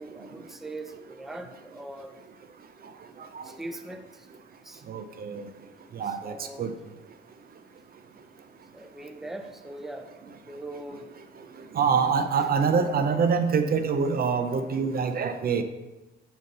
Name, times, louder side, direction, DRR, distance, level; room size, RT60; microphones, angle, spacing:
voice 1, 0.0-2.2 3.4-4.3 4.6-4.8 6.2-6.7 8.7-10.1 10.4-11.1 13.0-13.1, right 1 dB, ahead, 7 dB, 0.5 m, -41 dB
voice 2, 4.9-5.5 5.9-6.7 11.7-15.6, right 5 dB, 50° right, 9 dB, 0.6 m, -25 dB
7.0 x 3.8 x 5.3 m, 1.1 s
cardioid pair, 90°, 20 cm